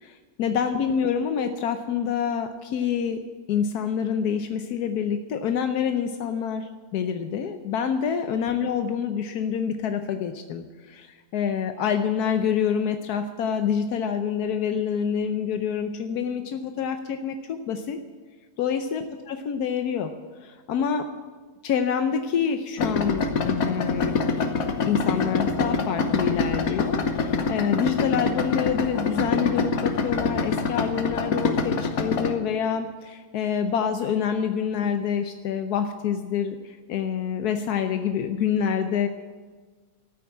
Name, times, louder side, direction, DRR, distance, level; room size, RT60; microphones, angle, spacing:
voice 1, 0.0-3.2 3.5-18.0 18.6-20.1 20.4-21.1 21.6-24.1 24.8-39.1, left 7 dB, 85° left, 7 dB, 1.3 m, -27 dB
Idling, 22.8-32.3, left 4 dB, 65° left, 1.4 m, -25 dB
13.5 x 8.7 x 8.5 m, 1.4 s
omnidirectional pair, 1.6 m